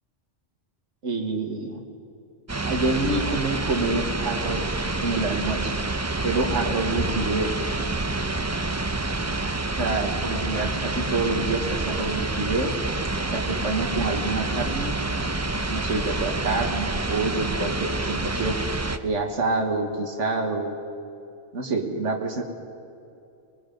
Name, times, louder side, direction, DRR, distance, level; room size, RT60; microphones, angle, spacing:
voice 1, 1.0-1.8 2.6-5.7 6.2-7.5 9.8-12.7 13.3-14.9 15.7-18.6 19.0-20.8 21.5-22.4, right 3 dB, 85° right, 3 dB, 1.9 m, -27 dB
sound 1, 2.5-19.0, right 2 dB, 20° right, 0.5 m, -28 dB
24.0 x 21.0 x 5.3 m, 2.7 s
omnidirectional pair, 1.2 m